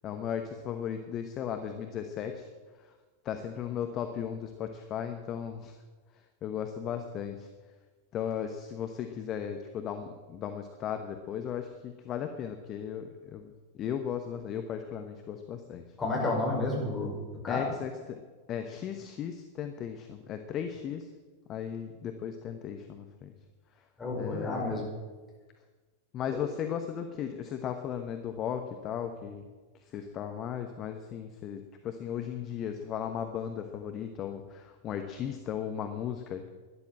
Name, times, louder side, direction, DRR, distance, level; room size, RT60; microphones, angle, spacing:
voice 1, 0.0-2.5 3.2-5.8 6.4-7.5 8.1-15.9 17.5-18.2 18.5-21.1 21.5-23.3 24.2-24.6 26.1-29.4 29.9-36.5, left 8 dB, 30° left, 6 dB, 1.1 m, -36 dB
voice 2, 16.0-17.2 17.4-17.6 24.0-24.8 26.3-26.4, left 2 dB, 15° left, -2 dB, 5.1 m, -30 dB
12.5 x 11.0 x 7.6 m, 1.3 s
figure-of-eight pair, 90°, 0 cm